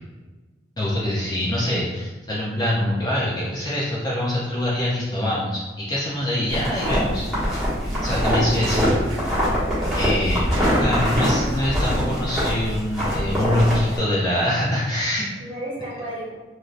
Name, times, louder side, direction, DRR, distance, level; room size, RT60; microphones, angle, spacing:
voice 1, 0.8-7.6 8.0-8.9 10.0-10.5 10.8-15.3, left 1 dB, 20° left, -7 dB, 0.4 m, -24 dB
sound 1, 6.4-12.6, right 2 dB, 90° right, 0.4 m, -38 dB
sound 2, 6.5-14.0, equal, ahead, 1.0 m, -23 dB
voice 2, 9.7-10.4 13.9-14.0 15.4-16.3, right 1 dB, 25° right, -9 dB, 1.2 m, -34 dB
3.1 x 2.5 x 2.5 m, 1.2 s
head